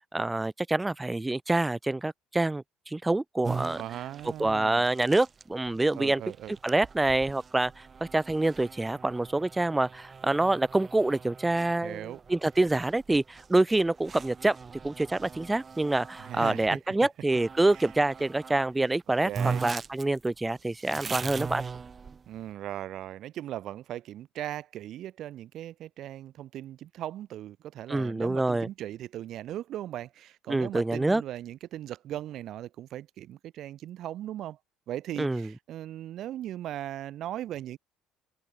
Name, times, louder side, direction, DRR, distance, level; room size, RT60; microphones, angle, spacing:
voice 1, 0.1-3.8 4.4-6.2 6.6-7.8 8.1-14.6 14.8-21.6 27.9-28.7 30.5-31.2 35.2-35.5, right 2 dB, 10° right, 0.9 m, -26 dB
sound 1, 3.4-16.6 17.3-18.7 19.0-19.1 19.3-22.4, right 5 dB, 30° right, 1.5 m, -40 dB
voice 2, 3.8-4.9 5.9-6.5 11.8-12.2 16.2-17.0 17.7-17.8 19.2-19.6 22.3-34.6 34.9-37.8, right 12 dB, 60° right, 2.0 m, -38 dB
cardioid pair, 110°, 0 cm